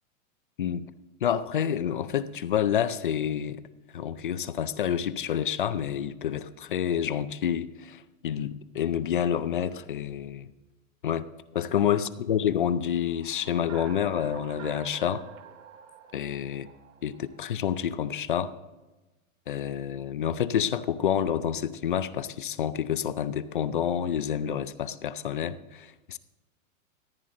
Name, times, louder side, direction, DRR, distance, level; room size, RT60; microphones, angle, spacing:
voice 1, 1.2-3.6 3.9-10.5 11.0-11.3 11.5-15.3 16.1-16.7 17.0-18.5 19.5-26.2, left 9 dB, 40° left, 14 dB, 0.4 m, -28 dB
sound 1, 12.9-17.6, right 8 dB, 60° right, 1.2 m, -48 dB
15.0 x 10.0 x 3.8 m, 1.1 s
supercardioid pair, 170°, 43 cm